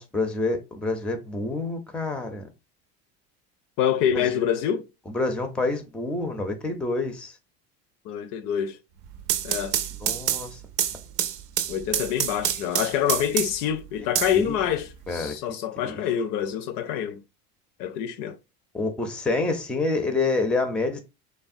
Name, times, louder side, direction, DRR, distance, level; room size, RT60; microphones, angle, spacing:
voice 1, 0.0-2.4 4.1-4.2 5.1-7.3 10.0-10.6 14.3-14.6 15.1-15.3 15.8-16.0 18.7-21.0, left 3 dB, 5° left, 0.4 m, -27 dB
voice 2, 3.8-4.8 8.1-8.8 9.4-9.8 11.7-17.2 17.8-18.4, left 9 dB, 70° left, 0.5 m, -26 dB
sound 1, 9.0-13.7 14.1-15.1, right 11 dB, 80° right, 0.5 m, -27 dB
3.3 x 2.1 x 2.5 m
supercardioid pair, 120°, 34 cm